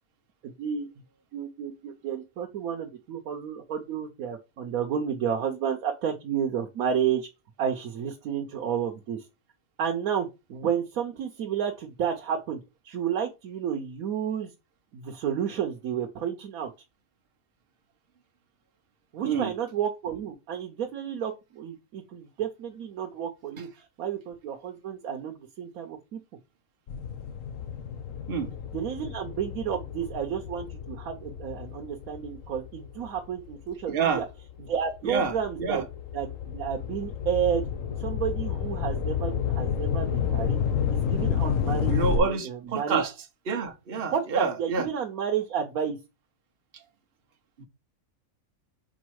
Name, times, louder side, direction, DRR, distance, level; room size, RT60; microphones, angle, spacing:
voice 1, 0.4-0.9 1.3-7.3 7.6-9.3 9.8-14.5 14.9-16.7 19.1-26.2 28.7-34.2 34.6-35.9 36.1-37.7 38.0-40.6 40.9-43.0 44.1-46.0, right 8 dB, 85° right, 1.2 m, -31 dB
sound 1, 26.9-33.6 34.2-42.2, left 7 dB, 70° left, 1.2 m, -30 dB
voice 2, 33.9-34.2 35.0-35.3 35.6-35.9 41.9-43.1 43.5-44.9 46.7-46.8 47.6-47.7, right 5 dB, 45° right, 1.1 m, -28 dB
5.2 x 4.1 x 4.7 m
omnidirectional pair, 1.5 m